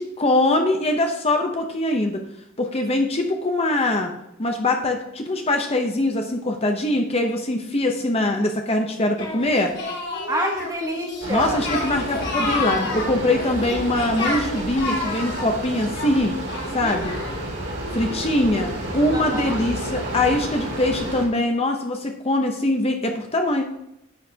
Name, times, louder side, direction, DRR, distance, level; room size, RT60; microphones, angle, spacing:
voice 1, 0.0-2.2 2.6-4.1 4.4-9.7 11.3-16.4 16.7-17.2 17.9-23.6, left 1 dB, 30° left, 4 dB, 0.8 m, -22 dB
Singing, 9.2-17.5, left 2 dB, 55° left, 2.2 m, -30 dB
voice 2, 10.3-11.6 16.8-17.2 17.8-18.4 19.1-19.6, right 1 dB, 15° right, 2 dB, 1.2 m, -29 dB
sound 1, 11.2-21.3, right 1 dB, 55° right, 2.8 m, -31 dB
11.5 x 8.3 x 2.9 m, 0.82 s
head